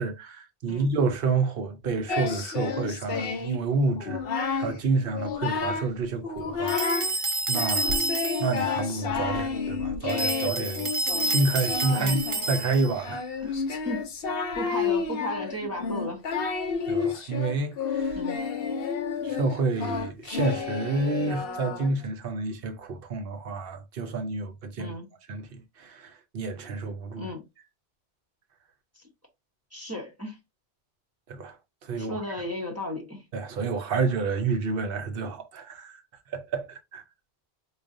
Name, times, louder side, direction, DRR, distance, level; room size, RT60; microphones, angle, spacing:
voice 1, 0.0-7.1 7.5-8.0 8.4-10.9 11.2-12.2 12.5-13.2 16.9-18.2 19.2-24.9 25.3-27.3 31.3-31.6 31.8-32.2 33.3-35.9 36.3-37.0, right 3 dB, 60° right, 0.9 m, -29 dB
Singing, 2.1-3.6 4.0-4.7 5.1-5.9 6.2-7.1 7.5-22.0, left 5 dB, 65° left, 0.9 m, -30 dB
sound 1, 6.7-8.6 10.1-13.0, right 2 dB, 35° right, 0.5 m, -29 dB
voice 2, 11.9-12.2 13.4-13.5 13.8-14.1 14.5-16.2 18.1-18.4 24.8-25.1 27.2-27.4 29.7-30.4 32.0-33.2, equal, 15° right, 0.8 m, -34 dB
4.8 x 2.3 x 2.6 m
omnidirectional pair, 1.1 m